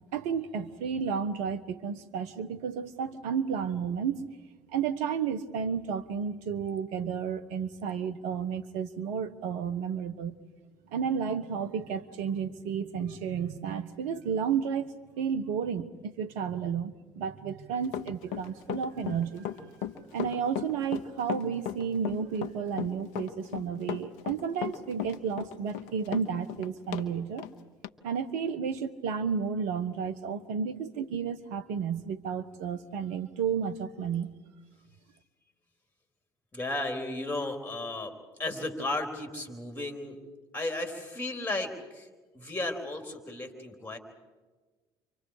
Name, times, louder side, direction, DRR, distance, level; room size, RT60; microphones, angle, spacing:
voice 1, 0.1-4.2 4.7-10.4 10.9-19.5 20.1-27.5 28.0-34.3, right 7 dB, 70° right, 13 dB, 1.2 m, -32 dB
Run, 17.8-27.1 27.4-27.5 27.8-27.9, left 10 dB, 70° left, 1.1 m, -35 dB
voice 2, 36.5-38.1 38.4-40.2 40.5-42.1 42.3-44.0, left 2 dB, 15° left, 5 dB, 4.0 m, -34 dB
30.0 x 24.5 x 5.0 m, 1.3 s
hypercardioid pair, 65°, 12 cm